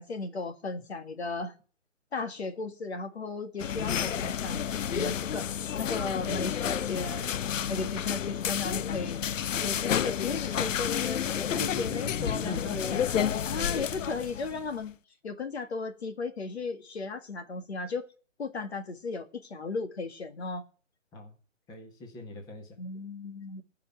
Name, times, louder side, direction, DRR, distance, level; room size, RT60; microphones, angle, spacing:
voice 1, 0.0-1.5 2.1-4.6 4.9-5.5 5.8-7.3 7.7-9.2 9.6-13.0 13.5-15.0 15.2-18.1 18.4-20.6 22.8-23.6, left 4 dB, 55° left, 1.8 m, -35 dB
sound 1, 3.6-14.7, left 9 dB, 75° left, 0.5 m, -31 dB
voice 2, 11.5-13.2 21.1-21.3 21.7-22.8, left 2 dB, 10° left, 1.7 m, -40 dB
15.0 x 5.9 x 8.2 m
figure-of-eight pair, 150°, 38 cm